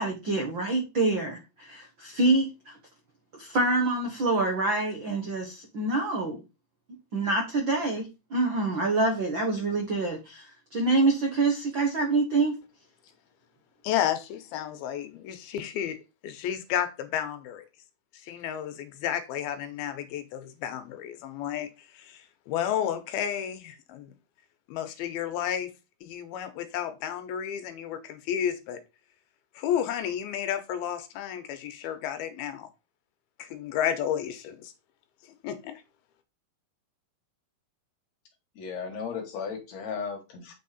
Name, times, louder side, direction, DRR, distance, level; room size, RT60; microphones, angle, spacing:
voice 1, 0.0-2.8 3.3-6.4 7.1-12.5, right 2 dB, 80° right, 1.0 m, -26 dB
voice 2, 13.8-16.0 16.2-17.7 18.1-24.1 24.7-25.7 26.0-28.8 29.6-32.7 33.4-34.7 35.4-35.8, left 9 dB, 80° left, 2.7 m, -32 dB
voice 3, 38.6-40.5, left 6 dB, 60° left, 2.2 m, -35 dB
8.5 x 4.7 x 4.1 m
omnidirectional pair, 4.5 m